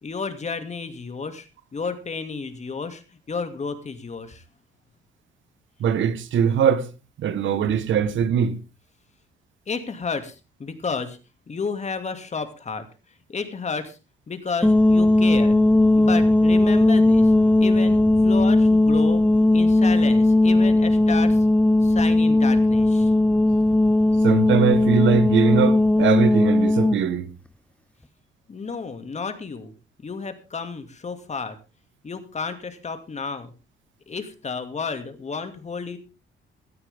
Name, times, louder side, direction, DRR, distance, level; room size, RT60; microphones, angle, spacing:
voice 1, 0.0-4.4 9.7-10.3 10.6-11.2 11.5-12.9 13.3-14.0 14.3-15.6 15.9-17.3 17.6-19.2 19.5-21.5 21.8-23.1 28.5-29.7 30.0-31.6 32.0-33.5 34.1-36.0, left 5 dB, 35° left, 2.4 m, -32 dB
voice 2, 5.8-6.9 7.2-8.6 24.2-27.3, right 7 dB, 75° right, 1.4 m, -21 dB
sound 1, 14.6-27.0, left 2 dB, 5° left, 0.7 m, -17 dB
17.0 x 12.5 x 3.6 m
cardioid pair, 90°, 20 cm